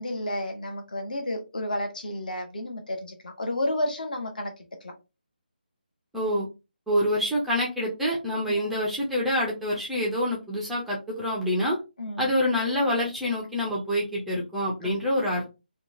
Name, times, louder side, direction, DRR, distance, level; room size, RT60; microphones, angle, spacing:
voice 1, 0.0-4.5 4.8-4.9 8.5-8.7 12.0-12.3 14.8-14.9, left 1 dB, 55° left, 0.9 m, -31 dB
voice 2, 6.1-6.5 6.9-11.8 12.2-15.5, equal, ahead, 0.4 m, -26 dB
2.8 x 2.2 x 2.4 m
figure-of-eight pair, 155°, 5 cm